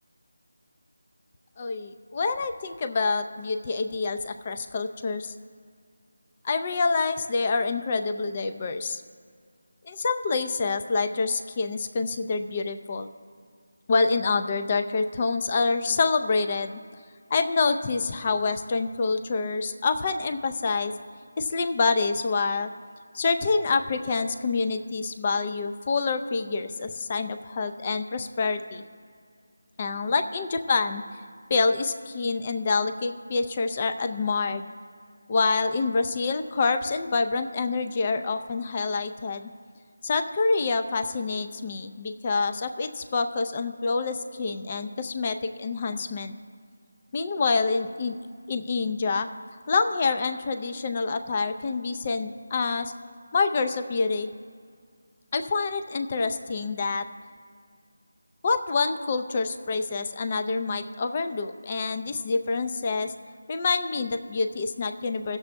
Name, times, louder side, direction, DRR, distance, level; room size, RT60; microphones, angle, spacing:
voice 1, 1.6-5.3 6.4-9.0 9.8-13.1 13.9-16.8 17.3-20.9 21.4-22.7 23.1-28.8 29.8-31.0 31.5-34.7 35.3-39.5 40.0-46.3 47.1-48.1 48.5-49.3 49.7-52.9 53.3-54.3 55.3-57.1 58.4-63.1 63.5-65.4, left 4 dB, 30° left, 8 dB, 0.5 m, -27 dB
16.5 x 6.8 x 3.5 m, 2.1 s
figure-of-eight pair, 165°, 0 cm